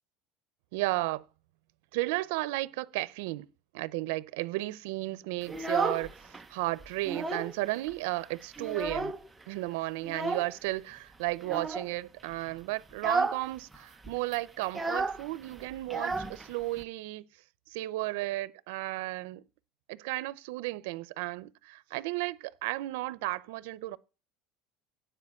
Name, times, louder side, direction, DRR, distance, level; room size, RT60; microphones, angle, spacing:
voice 1, 0.7-1.2 1.9-3.5 3.7-9.2 9.5-17.2 17.7-19.4 19.9-24.0, right 19 dB, 90° right, 0.6 m, -34 dB
Child speech kid speaking, 5.4-6.5 6.8-7.6 7.9-8.0 8.3-9.4 10.0-10.5 11.4-11.9 12.3-12.5 12.9-13.5 13.7-13.8 14.0-16.8, right 3 dB, 10° right, 0.6 m, -33 dB
9.9 x 4.8 x 7.8 m
cardioid pair, 155°, 0 cm